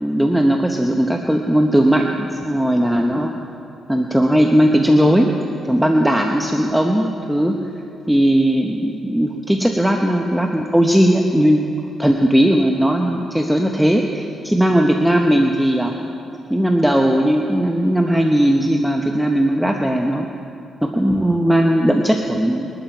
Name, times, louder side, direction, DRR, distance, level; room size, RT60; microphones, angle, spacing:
voice 1, 0.0-3.3 3.9-5.3 5.6-7.7 8.1-11.7 12.0-16.0 16.5-20.3 20.8-22.7, equal, 5° right, 2 dB, 1.0 m, -17 dB
22.0 x 11.5 x 4.6 m, 2.6 s
cardioid pair, 90°, 0 cm